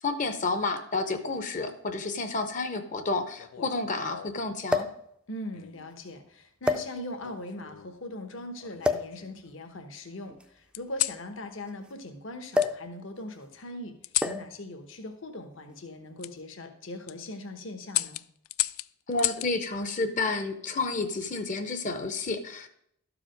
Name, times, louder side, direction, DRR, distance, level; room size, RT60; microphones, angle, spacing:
voice 1, 0.0-4.9 19.1-22.7, left 3 dB, 35° left, 9 dB, 0.7 m, -30 dB
sound 1, 0.9-1.0 2.1-2.2 2.5-2.6 4.7-5.1 5.9-6.1 6.6-7.3 8.8-9.2 10.3-11.9 12.5-12.9 13.2-13.4 14.2-14.6 15.5-15.8, left 2 dB, 5° right, 0.4 m, -29 dB
sound 2, 3.4-4.5 5.5-5.9 7.2-8.0 8.6-9.5 10.7-11.2 12.6-12.7 14.0-14.4 16.2-16.3 16.9-17.2 17.9-19.5 21.0-21.4, left 17 dB, 80° left, 0.3 m, -33 dB
voice 2, 5.3-13.9 14.2-18.2, left 1 dB, 65° left, 6 dB, 1.1 m, -40 dB
12.5 x 4.9 x 5.1 m, 0.71 s
head